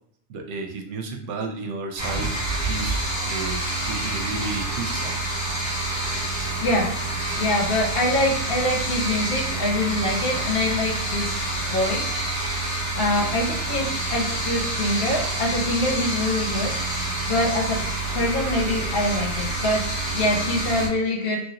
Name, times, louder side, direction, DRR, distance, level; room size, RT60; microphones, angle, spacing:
voice 1, 0.3-5.3, right 3 dB, 80° right, 3 dB, 0.9 m, -33 dB
sound 1, 2.0-20.9, right 2 dB, 35° left, 1.6 m, -27 dB
voice 2, 6.6-6.9 7.3-11.4 11.7-12.2 12.9-17.8 18.1-19.9 20.1-21.4, left 1 dB, 60° left, -1 dB, 0.8 m, -24 dB
3.0 x 2.7 x 2.8 m, 0.67 s
omnidirectional pair, 1.2 m